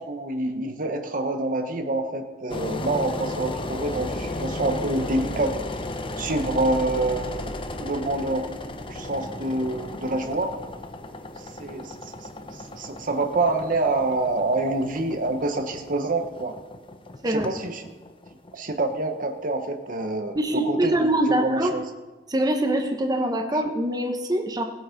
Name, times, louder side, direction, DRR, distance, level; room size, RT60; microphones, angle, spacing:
voice 1, 0.0-5.6 6.2-7.5 7.8-8.5 8.9-10.6 11.6-12.1 12.7-16.5 17.3-17.8 18.5-21.9, right 2 dB, 50° right, 6 dB, 1.1 m, -27 dB
Engine, 2.5-19.4, left 1 dB, 30° left, 0.9 m, -35 dB
voice 2, 20.4-21.7 22.3-24.7, right 1 dB, 25° right, 4 dB, 1.1 m, -24 dB
18.0 x 8.3 x 5.2 m, 1.2 s
head